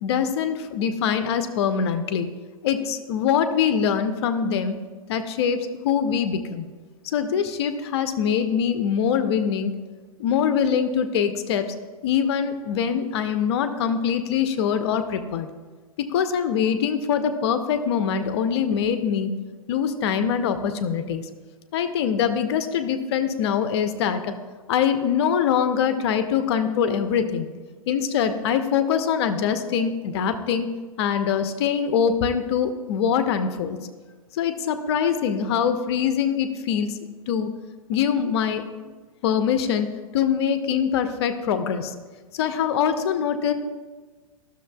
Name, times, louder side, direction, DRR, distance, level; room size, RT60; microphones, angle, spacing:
voice 1, 0.0-2.3 2.6-4.8 5.1-6.7 7.0-9.7 10.2-11.7 12.0-15.5 16.0-19.3 19.7-21.3 21.7-24.3 24.7-27.5 27.9-30.7 31.0-33.8 34.3-37.0 37.3-37.5 37.9-38.9 39.2-39.9 40.1-41.9 42.3-43.5, left 7 dB, 45° left, 10 dB, 0.6 m, -23 dB
12.5 x 6.5 x 2.3 m, 1.4 s
figure-of-eight pair, 105°, 18 cm